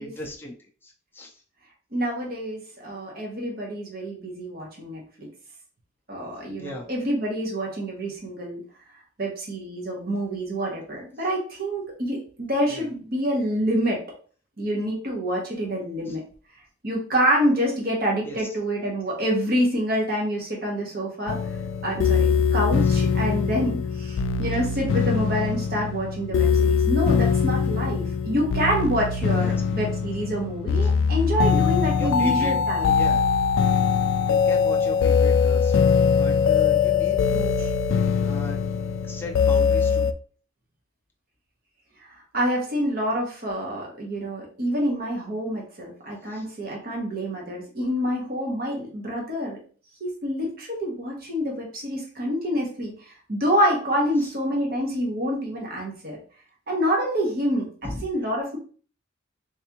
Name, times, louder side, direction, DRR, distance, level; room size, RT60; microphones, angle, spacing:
voice 1, 0.0-1.3 6.6-6.9 12.7-12.9 16.1-16.2 18.2-18.5 22.8-23.0 24.5-24.7 29.4-29.6 30.8-30.9 32.0-33.2 34.2-35.9 36.2-37.5 38.0-38.6 39.0-40.1 46.3-46.5 54.2-54.3 57.8-58.0, left 1 dB, 10° left, -1 dB, 0.5 m, -37 dB
voice 2, 1.9-5.3 6.1-8.6 9.2-14.0 14.6-16.2 16.8-21.4 21.8-32.9 37.6-37.7 42.3-49.6 50.0-56.2 56.7-57.7 58.0-58.6, equal, 50° right, -1 dB, 1.2 m, -27 dB
sound 1, 21.3-40.1, left 6 dB, 75° left, 0.3 m, -22 dB
3.4 x 3.3 x 3.0 m, 0.42 s
head